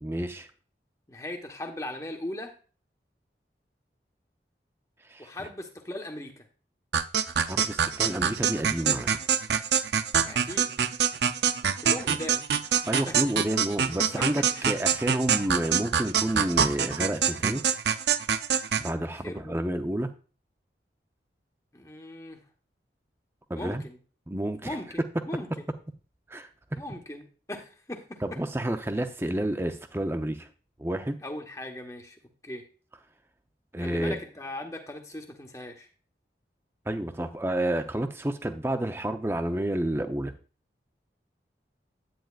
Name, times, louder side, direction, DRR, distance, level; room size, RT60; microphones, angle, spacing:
voice 1, 0.0-0.5 5.1-5.3 7.5-9.1 12.9-17.6 18.8-20.1 23.5-23.8 24.3-24.8 26.3-26.8 28.2-30.5 30.8-31.2 33.7-34.2 36.9-40.3, right 1 dB, 15° right, 7 dB, 0.6 m, -30 dB
voice 2, 1.1-2.5 5.2-6.4 10.2-10.7 11.8-12.5 13.1-13.2 14.2-14.3 14.5-14.7 19.1-19.7 21.7-22.4 23.6-24.0 24.6-25.7 26.7-28.2 31.2-32.2 32.4-32.6 33.8-35.9, left 1 dB, 20° left, 3 dB, 1.2 m, -39 dB
sound 1, 6.9-18.9, right 7 dB, 75° right, 0.5 m, -25 dB
10.5 x 9.0 x 2.4 m, 0.37 s
head